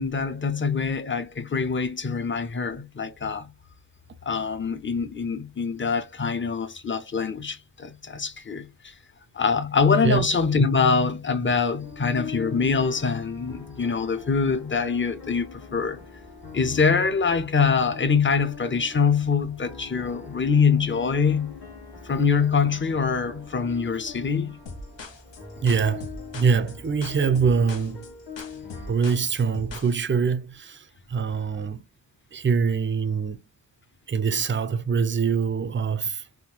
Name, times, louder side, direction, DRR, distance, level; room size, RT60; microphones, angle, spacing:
voice 1, 0.0-3.5 4.2-8.9 9.3-16.0 16.5-21.5 22.0-24.6 28.6-28.7, left 5 dB, 30° left, 0.6 m, -24 dB
sound 1, 11.8-28.9, left 5 dB, 60° left, 1.6 m, -43 dB
sound 2, 24.7-29.9, left 3 dB, 85° left, 0.9 m, -41 dB
voice 2, 25.6-28.0 28.9-31.8 32.3-33.4 34.1-36.2, right 6 dB, 30° right, 0.4 m, -24 dB
3.7 x 2.5 x 2.8 m
wide cardioid pair, 65°, 43 cm